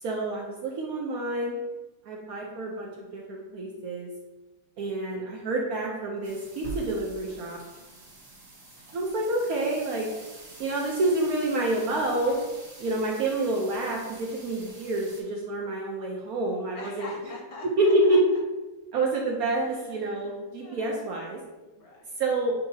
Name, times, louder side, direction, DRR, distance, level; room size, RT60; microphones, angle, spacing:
voice 1, 0.0-1.5 2.1-4.1 4.8-7.6 8.9-10.1 10.6-12.4 12.8-17.1 17.8-18.2 18.9-21.4 22.2-22.5, right 2 dB, 65° right, -2 dB, 0.9 m, -28 dB
sound 1, 6.2-15.2, right 2 dB, 35° right, 1.0 m, -46 dB
voice 2, 16.8-18.2 19.6-21.1 21.7-22.1, left 2 dB, 65° left, -1 dB, 1.0 m, -45 dB
6.8 x 2.8 x 2.7 m, 1.1 s
omnidirectional pair, 2.0 m